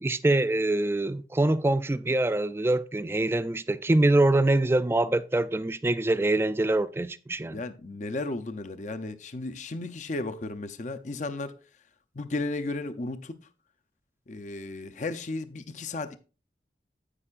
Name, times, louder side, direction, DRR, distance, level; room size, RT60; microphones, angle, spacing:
voice 1, 0.0-7.6, right 2 dB, 15° right, 0.3 m, -24 dB
voice 2, 7.5-11.5 12.1-13.4 14.3-16.2, left 2 dB, 45° left, 0.6 m, -34 dB
9.8 x 8.6 x 2.4 m
head